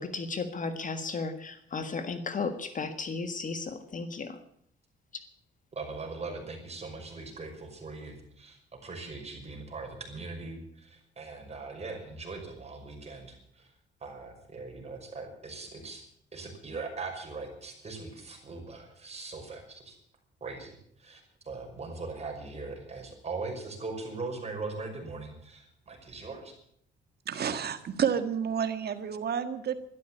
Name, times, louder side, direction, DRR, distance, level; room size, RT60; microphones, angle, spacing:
voice 1, 0.0-4.4, left 4 dB, 40° left, 9 dB, 1.6 m, -34 dB
voice 2, 5.7-13.7 14.0-16.0 16.3-20.0 20.4-21.2 21.5-26.5, right 3 dB, 30° right, 2 dB, 5.7 m, -40 dB
voice 3, 27.3-29.8, right 7 dB, 55° right, 10 dB, 1.7 m, -30 dB
13.0 x 11.5 x 8.7 m, 0.70 s
cardioid pair, 90°, 20 cm